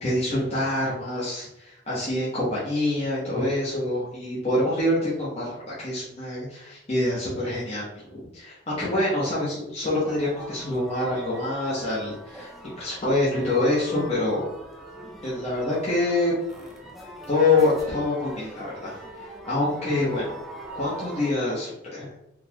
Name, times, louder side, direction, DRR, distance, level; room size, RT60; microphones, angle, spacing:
voice 1, 0.0-12.5 12.8-14.5 15.2-16.3 17.3-19.0 19.5-20.4 20.7-22.1, left 2 dB, 35° left, -8 dB, 0.9 m, -26 dB
sound 1, 9.9-21.3, right 1 dB, ahead, 0.4 m, -42 dB
3.8 x 2.3 x 2.9 m, 0.87 s
head